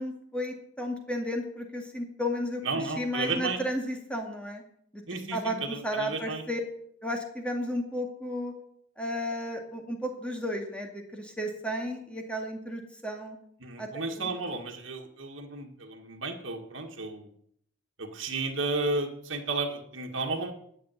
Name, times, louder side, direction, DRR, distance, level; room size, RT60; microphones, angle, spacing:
voice 1, 0.0-2.6 3.0-4.6 4.9-5.0 5.3-5.6 5.8-6.6 7.0-8.5 9.0-13.4 13.8-14.3, equal, 5° left, 2 dB, 2.2 m, -33 dB
voice 2, 2.6-3.6 5.1-6.4 13.6-17.3 18.0-20.5, right 3 dB, 70° right, 1 dB, 1.8 m, -33 dB
11.0 x 6.9 x 9.2 m, 0.66 s
head